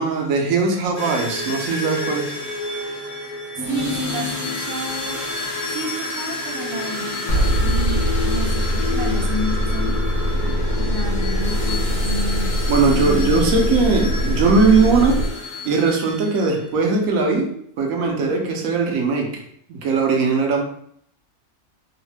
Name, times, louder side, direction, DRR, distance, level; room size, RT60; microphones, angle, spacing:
voice 1, 0.0-2.3 10.4-10.5 12.7-15.3 15.6-19.4 19.7-20.6, right 4 dB, 85° right, 2 dB, 1.0 m, -19 dB
sound 1, 1.0-16.6, left 3 dB, 50° left, 0.8 m, -29 dB
voice 2, 3.7-5.2 5.6-7.2 7.6-10.0 10.8-12.6 12.9-13.6, right 1 dB, 65° right, 2 dB, 0.7 m, -30 dB
sound 2, 7.3-15.3, equal, 80° left, 1.1 m, -22 dB
3.0 x 2.0 x 3.1 m, 0.66 s
omnidirectional pair, 1.4 m